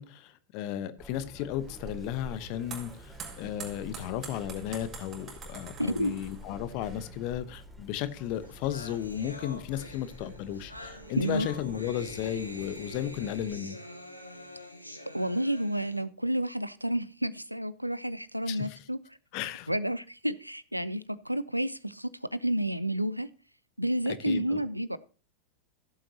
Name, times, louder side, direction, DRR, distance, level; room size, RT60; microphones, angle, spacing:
voice 1, 0.0-13.8 18.5-18.8 19.3-19.7 24.1-24.6, left 11 dB, 45° left, 1.0 m, -34 dB
Chirp tweet, 1.0-13.5, equal, 5° right, 2.6 m, -50 dB
sound 1, 1.6-7.3, right 4 dB, 25° right, 4.3 m, -45 dB
voice 2, 5.8-6.1 11.2-11.5 15.1-19.0 19.7-23.3 23.8-25.0, right 1 dB, 90° right, 0.5 m, -30 dB
sound 2, 8.1-8.2 8.4-16.0, equal, 90° left, 1.3 m, -45 dB
16.0 x 7.6 x 2.8 m
figure-of-eight pair, 90°, 0 cm